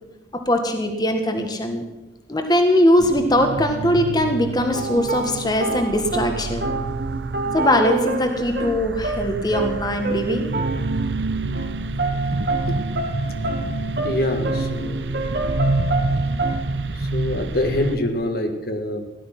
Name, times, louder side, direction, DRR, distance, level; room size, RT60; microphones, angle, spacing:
voice 1, 0.5-1.8 2.3-6.7 7.5-10.5, left 1 dB, 25° left, 5 dB, 1.5 m, -20 dB
sound 1, 3.0-18.0, right 3 dB, 85° right, 0.8 m, -28 dB
sound 2, 4.7-11.2 11.5-11.7 12.0-16.6, right 3 dB, 60° right, 1.7 m, -28 dB
voice 2, 13.7-15.2 16.9-19.1, left 1 dB, 60° left, 5 dB, 1.6 m, -26 dB
17.0 x 11.5 x 5.9 m, 1.0 s
head